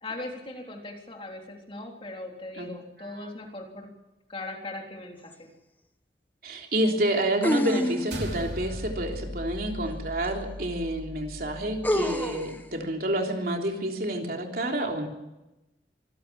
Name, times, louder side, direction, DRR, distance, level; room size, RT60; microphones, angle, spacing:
voice 1, 0.0-3.9 4.3-5.5, left 2 dB, 30° left, 1 dB, 3.6 m, -39 dB
sound 1, 5.3-5.4 7.4-8.4 10.2-10.3 11.8-12.6, left 1 dB, 10° left, 1.1 m, -27 dB
voice 2, 6.4-15.1, right 1 dB, 55° right, 2 dB, 3.5 m, -29 dB
sound 2, 8.1-12.7, equal, 75° right, 4.2 m, -38 dB
25.5 x 16.0 x 7.5 m, 0.99 s
head